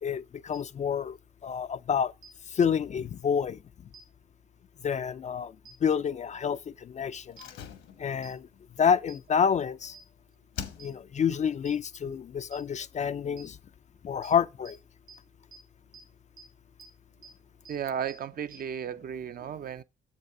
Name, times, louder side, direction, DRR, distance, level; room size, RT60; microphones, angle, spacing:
voice 1, 0.0-1.2 1.4-2.1 2.5-3.6 4.8-5.6 5.8-7.6 8.0-8.5 8.8-9.9 10.8-13.6 14.0-14.8, left 7 dB, 35° left, 0.4 m, -28 dB
sound 1, 0.5-0.6 2.2-2.3 3.9-4.0 5.7-5.8 7.4-7.5 8.2-8.3 9.1-9.2 9.9-10.0 10.8-10.9 11.7-11.8 12.5-12.6 13.4-13.5 14.2-14.3 14.7-14.8 15.1-15.2 15.5-15.6 15.9-16.0 16.4-16.5 16.8-16.9 17.2-17.3 17.7-17.8 18.1-18.2 18.5-18.6, right 6 dB, 70° right, 2.1 m, -49 dB
Slam, 7.3-10.1 10.5-11.3 11.6-11.7, left 8 dB, 75° left, 1.2 m, -44 dB
voice 2, 17.7-19.8, right 8 dB, 50° right, 0.5 m, -34 dB
7.1 x 5.3 x 4.6 m
cardioid pair, 90°, 20 cm